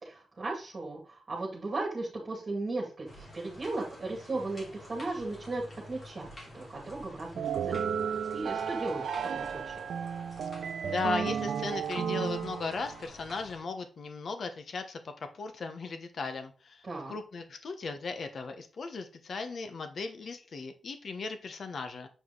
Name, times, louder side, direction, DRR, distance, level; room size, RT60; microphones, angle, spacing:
voice 1, 0.0-5.6 5.9-6.3 6.5-9.8 16.8-17.1, right 2 dB, 35° right, -4 dB, 2.4 m, -36 dB
sound 1, 3.1-13.6, left 1 dB, 35° left, 2.9 m, -50 dB
sound 2, 7.4-13.1, right 7 dB, 75° right, 0.7 m, -33 dB
voice 2, 10.6-22.1, left 4 dB, 55° left, 7 dB, 1.0 m, -37 dB
7.9 x 4.9 x 3.9 m, 0.37 s
wide cardioid pair, 130°, 0 cm